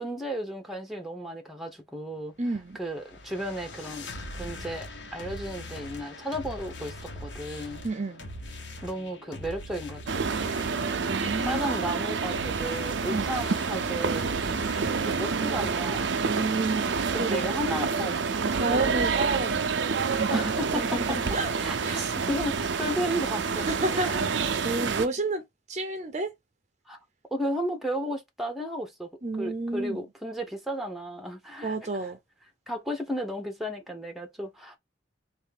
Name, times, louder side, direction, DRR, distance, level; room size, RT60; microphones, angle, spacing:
voice 1, 0.0-2.3 2.7-4.1 4.3-7.8 8.8-10.6 11.4-14.3 15.0-16.2 17.2-18.2 20.3-21.2 21.6-24.2 26.9-27.0 27.3-31.8 32.0-32.1 32.7-34.8, equal, ahead, 1.0 m, -34 dB
voice 2, 2.4-2.8 7.8-8.3 11.1-11.6 13.1-13.3 15.0-15.2 16.2-17.4 18.6-19.8 20.1-21.5 21.8-22.2 23.6-26.3 29.2-30.0 31.6-32.2, right 2 dB, 40° right, 0.7 m, -31 dB
sound 1, 2.5-15.2, left 1 dB, 80° left, 1.2 m, -41 dB
sound 2, 10.1-25.1, right 5 dB, 80° right, 0.6 m, -28 dB
3.5 x 2.6 x 3.6 m
head